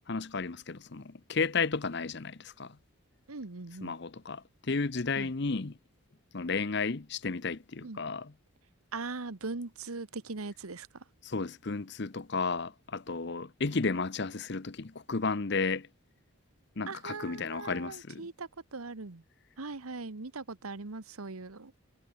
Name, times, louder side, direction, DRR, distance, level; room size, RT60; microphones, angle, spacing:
voice 1, 0.1-2.8 3.8-5.8 6.3-8.3 11.2-15.9 16.8-18.3, left 4 dB, 50° left, 0.8 m, -33 dB
voice 2, 3.3-4.0 5.1-5.3 7.8-8.0 8.9-11.0 16.9-19.2 19.6-21.7, right 3 dB, 90° right, 1.3 m, -40 dB
head